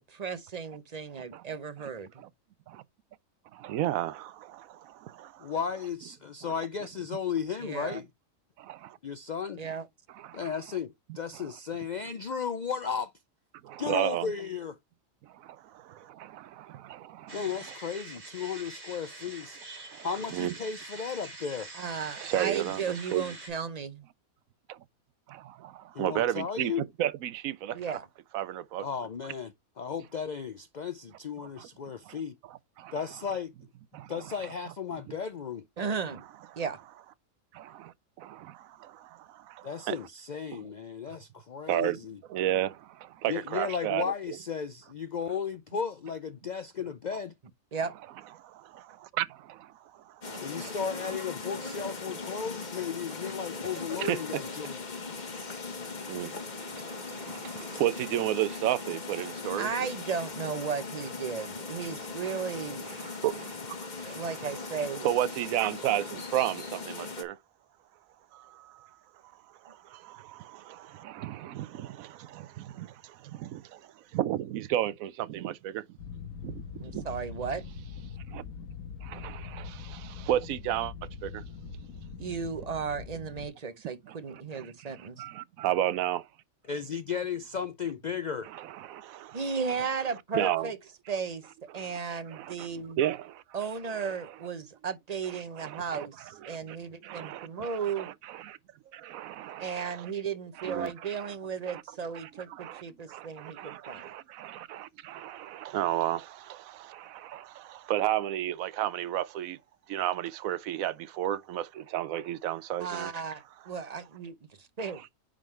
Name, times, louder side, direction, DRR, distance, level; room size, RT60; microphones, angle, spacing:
voice 1, 0.0-2.1 7.6-8.0 9.6-9.8 21.7-24.1 27.7-28.1 35.8-36.2 36.6-36.8 47.7-47.9 59.6-62.9 64.0-65.1 76.8-77.6 82.2-85.2 89.3-90.8 91.1-91.4 91.7-93.0 93.5-98.1 99.6-104.1 112.8-115.0, right 6 dB, 35° right, 0.7 m, -35 dB
voice 2, 3.5-5.5 6.4-6.5 8.6-9.0 10.1-10.5 11.3-11.4 13.6-14.3 15.2-17.4 19.9-20.5 22.2-22.8 23.1-23.2 24.7-24.8 25.3-27.8 28.3-28.9 31.6-31.7 32.0-32.2 32.5-33.0 33.9-34.1 35.1-35.2 37.5-40.0 40.5-40.7 41.7-42.0 42.3-44.4 48.4-50.7 54.0-54.2 55.4-55.5 56.1-59.9 62.2-62.6 62.8-64.5 65.0-67.4 68.3-68.9 69.6-75.8 76.4-77.1 78.3-78.4 79.0-80.9 81.2-81.4 84.1-84.2 84.5-86.3 88.5-89.4 90.3-90.7 91.7-92.0 92.3-92.7 93.0-93.4 95.6-96.1 96.4-96.8 97.0-98.6 98.9-100.1 100.6-101.3 101.7-101.8 102.1-102.8 103.1-109.6 109.9-113.1 114.8-114.9, right 12 dB, 85° right, 1.0 m, -33 dB
voice 3, 5.4-8.1 9.0-9.6 10.3-13.1 13.8-14.8 17.3-19.6 20.0-21.7 25.9-26.8 28.8-32.3 32.9-33.5 34.1-35.6 39.6-42.2 43.3-47.3 50.4-54.8 86.7-88.5, left 6 dB, 60° left, 0.4 m, -35 dB
sound 1, 17.3-23.5, right 2 dB, 70° right, 4.2 m, -45 dB
sound 2, 50.2-67.2, left 4 dB, 35° left, 1.3 m, -39 dB
sound 3, 76.0-83.5, left 5 dB, 80° left, 1.5 m, -42 dB
9.9 x 3.8 x 3.1 m
omnidirectional pair, 1.4 m